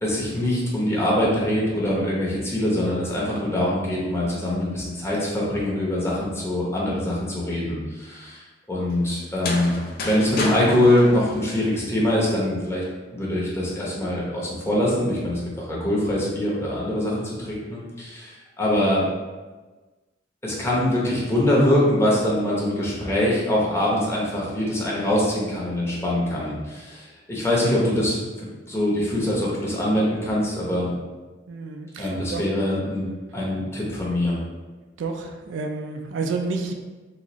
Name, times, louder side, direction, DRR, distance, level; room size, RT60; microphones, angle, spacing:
voice 1, 0.0-8.4 8.7-9.7 10.0-12.8 13.1-15.4 15.7-19.0 20.4-28.2 28.7-30.9 32.0-33.1 33.3-34.4, left 1 dB, 15° left, -6 dB, 0.8 m, -23 dB
sound 1, 9.3-12.1, left 2 dB, 50° left, 0.5 m, -32 dB
voice 2, 31.5-32.4 35.0-36.7, right 4 dB, 70° right, 3 dB, 0.4 m, -30 dB
3.9 x 2.4 x 2.9 m, 1.3 s
head